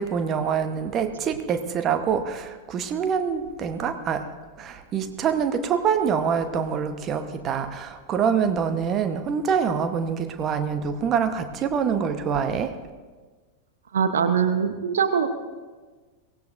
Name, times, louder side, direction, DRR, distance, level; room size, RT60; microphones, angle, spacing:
voice 1, 0.0-4.3 4.6-12.8, right 7 dB, 30° right, 8 dB, 1.1 m, -25 dB
voice 2, 13.9-15.3, right 7 dB, 65° right, 8 dB, 1.0 m, -22 dB
23.5 x 18.0 x 2.7 m, 1.4 s
figure-of-eight pair, 90°, 0 cm